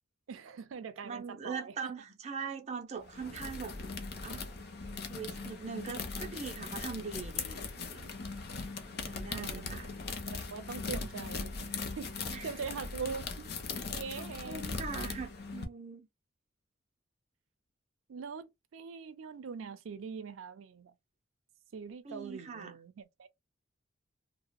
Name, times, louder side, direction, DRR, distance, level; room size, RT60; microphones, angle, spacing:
voice 1, 0.3-1.9 9.3-9.8 10.3-13.5 13.8-14.7 18.1-20.9 21.7-23.3, right 5 dB, 85° right, 0.4 m, -43 dB
voice 2, 1.0-3.8 4.2-4.5 5.1-8.2 9.0-9.9 12.3-12.5 14.2-16.1 22.0-22.8, right 5 dB, 35° right, 0.5 m, -41 dB
sound 1, 3.0-15.7, left 4 dB, 50° left, 0.5 m, -40 dB
2.8 x 2.0 x 2.2 m
head